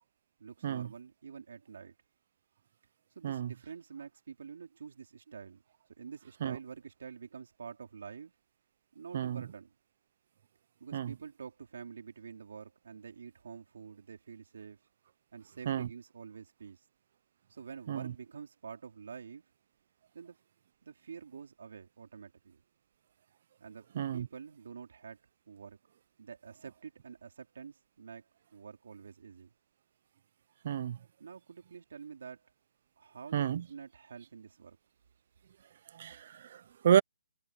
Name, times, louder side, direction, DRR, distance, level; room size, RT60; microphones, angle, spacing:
voice 1, 0.4-1.9 3.2-5.6 6.0-8.3 8.9-9.7 10.8-14.8 15.3-16.9 17.5-19.5 20.1-20.4 20.8-22.6 23.6-25.2 25.5-25.8 26.2-29.5 31.2-32.5 33.0-34.8, right 6 dB, 65° right, 3.8 m, -48 dB
voice 2, 24.0-24.3 30.6-31.0 33.3-33.6 35.9-37.0, right 9 dB, 45° right, 0.5 m, -30 dB
hypercardioid pair, 165°, 0 cm